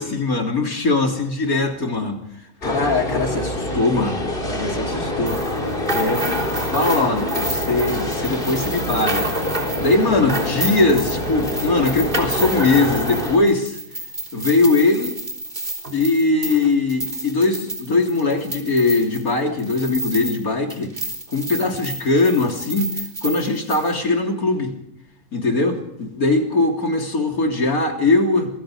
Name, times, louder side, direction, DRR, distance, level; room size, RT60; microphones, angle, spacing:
voice 1, 0.0-2.2 2.6-4.2 4.5-5.4 5.9-6.3 6.7-9.3 9.8-13.8 14.3-15.2 15.9-20.9 21.3-22.9 23.2-24.7 25.3-28.5, left 3 dB, 70° left, 3 dB, 4.0 m, -20 dB
sound 1, 2.6-13.4, left 1 dB, 35° left, 3.9 m, -26 dB
sound 2, 5.3-20.4 20.7-23.9, right 1 dB, 35° right, 3.7 m, -30 dB
26.5 x 22.0 x 5.2 m, 0.77 s
omnidirectional pair, 1.6 m